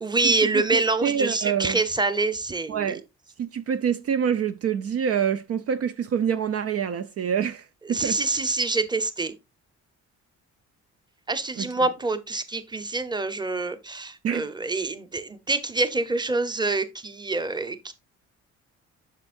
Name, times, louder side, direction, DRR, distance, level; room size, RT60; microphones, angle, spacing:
voice 1, 0.0-3.0 7.8-9.3 11.3-17.9, right 3 dB, 15° right, 0.9 m, -26 dB
voice 2, 0.7-1.8 2.7-3.0 3.4-8.2 11.6-11.7 14.2-14.5, right 8 dB, 50° right, 0.5 m, -26 dB
8.1 x 6.3 x 2.5 m
cardioid pair, 90°, 30 cm